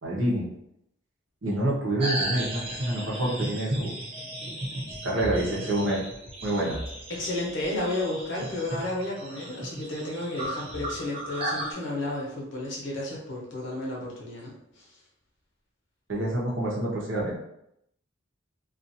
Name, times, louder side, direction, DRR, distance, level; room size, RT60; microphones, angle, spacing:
voice 1, 0.0-0.5 1.4-3.9 5.0-6.0 6.4-6.8 16.1-17.3, right 1 dB, 65° right, -4 dB, 0.8 m, -27 dB
sound 1, 2.0-11.7, right 1 dB, 30° right, 0.6 m, -35 dB
voice 2, 7.1-14.9, left 1 dB, 60° left, -4 dB, 0.9 m, -32 dB
2.5 x 2.4 x 2.7 m, 0.77 s
head